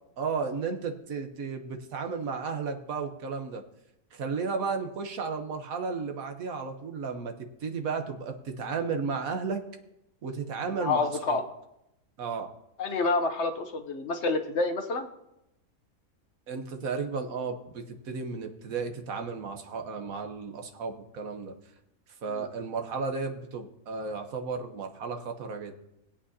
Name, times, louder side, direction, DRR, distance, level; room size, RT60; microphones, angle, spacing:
voice 1, 0.2-3.6 4.1-9.6 10.2-11.4 12.2-12.5 16.5-21.5 22.2-25.7, right 5 dB, 75° right, 5 dB, 1.5 m, -33 dB
voice 2, 10.8-11.4 12.8-15.1 22.3-22.4, left 3 dB, 55° left, 7 dB, 1.0 m, -28 dB
20.0 x 8.6 x 2.8 m, 0.85 s
omnidirectional pair, 1.5 m